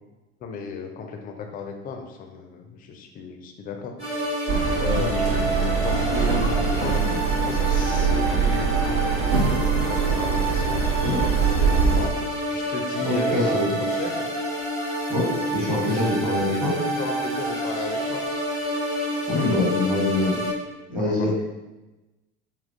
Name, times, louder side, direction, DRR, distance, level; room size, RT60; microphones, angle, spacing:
voice 1, 0.4-3.9 4.8-7.0 7.4-12.1 12.5-13.6 13.9-14.3 16.5-18.2 19.3-19.5 20.9-21.3, left 5 dB, 25° left, 4 dB, 0.4 m, -35 dB
sound 1, 4.0-20.5, right 1 dB, 80° right, 1.2 m, -28 dB
sound 2, 4.5-12.0, right 5 dB, 60° right, 0.8 m, -23 dB
voice 2, 13.0-13.8 15.1-16.7 19.3-20.4 20.9-21.3, left 2 dB, 25° right, -5 dB, 1.1 m, -24 dB
3.4 x 2.3 x 2.6 m, 1.1 s
figure-of-eight pair, 70°, 33 cm